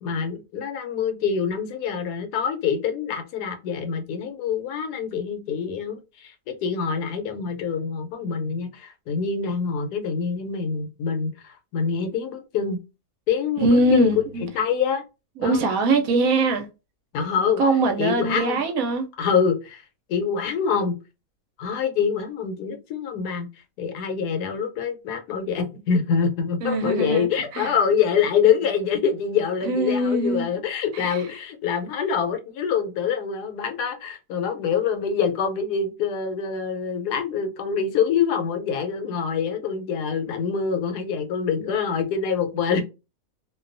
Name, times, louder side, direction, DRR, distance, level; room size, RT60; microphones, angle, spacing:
voice 1, 0.0-12.8 13.3-14.1 14.5-15.0 15.4-15.7 17.1-17.6 18.0-18.6 19.2-19.8 20.1-20.9 21.6-23.5 23.8-42.8, left 6 dB, 90° left, 1.2 m, -25 dB
voice 2, 13.6-14.5 15.4-16.7 17.6-19.1 26.6-27.3 27.5-27.7 29.6-30.5 30.9-31.2, right 2 dB, 70° right, 0.9 m, -22 dB
2.6 x 2.3 x 2.5 m
omnidirectional pair, 1.7 m